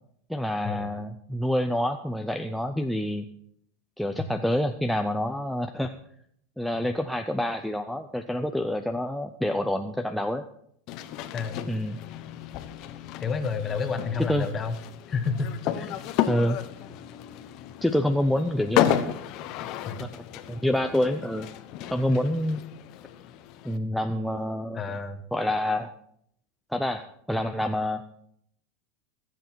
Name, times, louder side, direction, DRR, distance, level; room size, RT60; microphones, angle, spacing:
voice 1, 0.3-3.2 4.0-5.9 6.6-10.4 11.7-12.0 14.3-14.5 16.2-16.6 17.8-19.2 20.0-21.5 21.9-22.6 23.6-25.0 25.3-25.9 26.7-28.0, left 1 dB, ahead, 5 dB, 0.5 m, -27 dB
sound 1, 10.9-23.8, left 11 dB, 45° left, 1.0 m, -32 dB
voice 2, 13.2-14.7 15.1-16.0 19.9-20.0 24.7-25.2, left 5 dB, 20° left, 9 dB, 1.2 m, -30 dB
21.5 x 8.0 x 4.6 m, 0.69 s
supercardioid pair, 145°, 0 cm